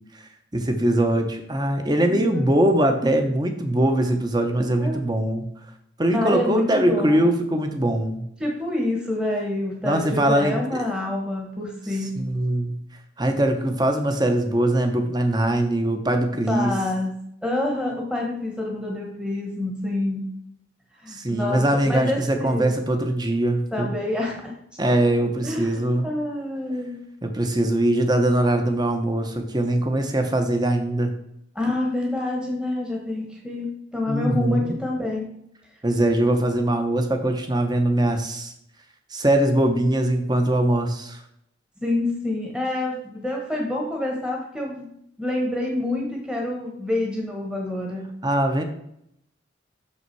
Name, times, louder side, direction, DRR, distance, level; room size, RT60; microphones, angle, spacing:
voice 1, 0.5-5.5 6.0-8.2 9.8-10.8 12.0-12.8 13.2-16.7 21.1-23.9 24.8-26.1 27.2-31.1 34.1-34.8 35.8-38.5 39.1-41.2 48.2-48.6, right 1 dB, 20° right, 6 dB, 0.8 m, -22 dB
voice 2, 2.1-2.6 4.8-5.0 6.1-7.2 8.4-12.2 16.5-20.3 21.0-22.7 23.7-24.5 25.4-27.0 31.5-35.2 41.8-44.9 45.2-48.1, left 1 dB, 5° right, -1 dB, 1.1 m, -27 dB
6.6 x 5.5 x 4.7 m, 0.75 s
head